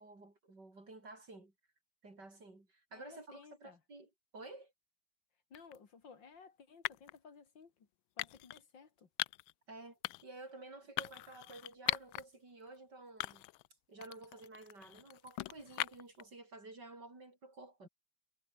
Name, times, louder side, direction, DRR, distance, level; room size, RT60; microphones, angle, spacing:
voice 1, 0.0-1.5 2.0-4.7 9.7-13.5 13.9-17.9, right 2 dB, 55° right, 6.4 m, -52 dB
voice 2, 2.9-3.8 5.5-7.9 8.2-9.1, left 5 dB, 65° left, 3.1 m, -57 dB
sound 1, 5.5-5.8 6.8-7.2 8.2-8.6 9.2-9.5 10.0-10.4 11.0-12.2 12.7-12.8 13.2-13.7 14.0-16.2, left 18 dB, 90° left, 1.4 m, -40 dB
omnidirectional pair, 2.1 m